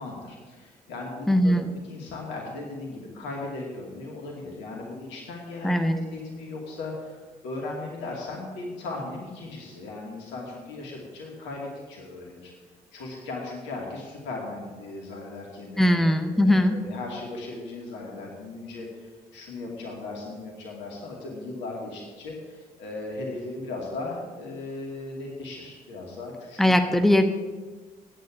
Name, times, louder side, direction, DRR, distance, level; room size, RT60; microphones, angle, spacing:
voice 1, 0.0-12.5 12.9-16.0 16.3-27.0, left 2 dB, 65° left, -1 dB, 2.4 m, -37 dB
voice 2, 1.3-1.7 5.6-6.0 15.8-16.8 26.6-27.2, left 1 dB, ahead, 7 dB, 1.0 m, -20 dB
10.0 x 9.3 x 7.2 m, 1.4 s
figure-of-eight pair, 40°, 20 cm